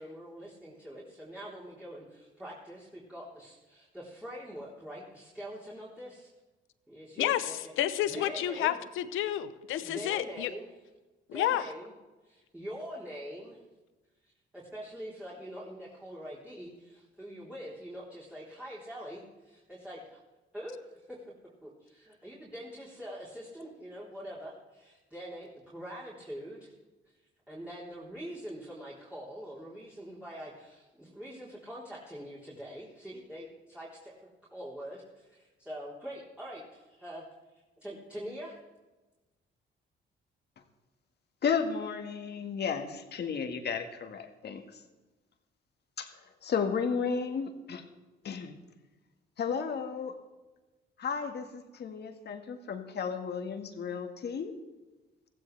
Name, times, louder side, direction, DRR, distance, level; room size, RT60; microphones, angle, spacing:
voice 1, 0.0-6.3 6.9-7.7 8.1-8.8 9.8-10.7 11.3-11.9 12.2-13.6 14.2-20.2 20.5-21.2 21.6-26.7 27.5-34.1 34.5-37.2 37.8-38.6, equal, 5° right, -8 dB, 3.8 m, -44 dB
voice 2, 7.2-10.5 11.3-11.6, left 12 dB, 85° left, 12 dB, 0.8 m, -30 dB
voice 3, 41.4-44.6 46.0-46.1 46.4-47.8 48.2-48.6 49.4-50.1 51.0-54.5, left 6 dB, 55° left, 5 dB, 1.8 m, -33 dB
16.0 x 15.5 x 3.4 m, 1.2 s
cardioid pair, 90°, 20 cm